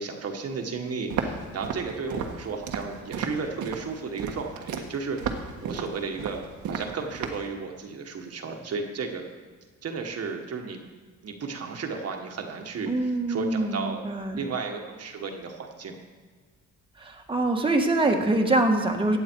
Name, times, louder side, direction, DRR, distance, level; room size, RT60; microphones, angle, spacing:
voice 1, 0.0-5.2 5.6-6.4 6.7-9.3 9.8-10.8 11.2-16.0, right 5 dB, 55° right, 3 dB, 1.5 m, -34 dB
Walk footsteps, 1.1-7.5, right 6 dB, 80° right, 1.4 m, -34 dB
voice 2, 12.9-14.4 17.0-19.2, right 2 dB, 15° right, 2 dB, 1.5 m, -24 dB
15.5 x 8.7 x 4.6 m, 1.5 s
cardioid pair, 90°, 30 cm